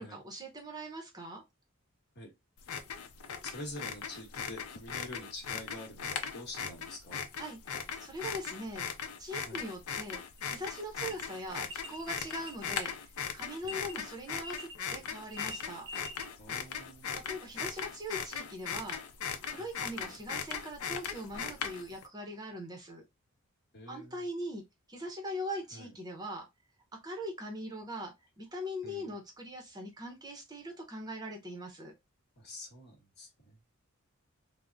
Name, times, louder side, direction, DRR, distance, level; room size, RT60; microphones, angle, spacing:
voice 1, 0.0-1.4 7.4-8.9 9.2-10.2 10.5-15.9 17.1-19.0 19.5-23.0 23.9-24.6 24.9-26.5 27.0-31.9, equal, 20° right, 0.6 m, -41 dB
sound 1, 2.6-22.0, left 7 dB, 80° left, 0.5 m, -39 dB
voice 2, 3.4-7.2 9.4-9.6 11.0-11.2 13.6-13.8 16.4-17.1 19.6-20.2 23.7-24.2 25.7-25.9 28.8-29.1 32.4-33.6, left 1 dB, 50° left, 1.1 m, -47 dB
sound 2, 10.4-10.5 11.1-11.2 11.6-13.9 14.4-14.9 15.2-16.3 16.6-16.7, equal, 60° right, 0.6 m, -45 dB
3.5 x 2.0 x 2.5 m
head